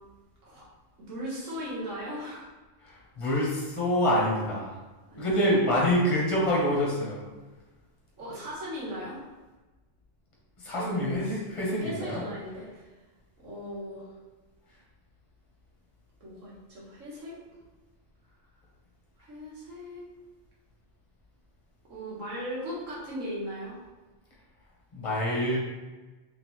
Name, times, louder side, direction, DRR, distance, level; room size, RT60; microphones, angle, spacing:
voice 1, 1.0-2.5 5.1-5.4 8.2-9.3 10.7-11.4 11.8-12.9 13.4-14.1 16.2-17.4 19.2-20.0 21.9-23.8, equal, 85° right, -6 dB, 1.7 m, -38 dB
voice 2, 2.8-4.8 5.2-7.2 10.6-12.2 24.9-25.6, equal, 30° left, -4 dB, 1.0 m, -26 dB
3.8 x 3.4 x 3.0 m, 1.2 s
omnidirectional pair, 1.3 m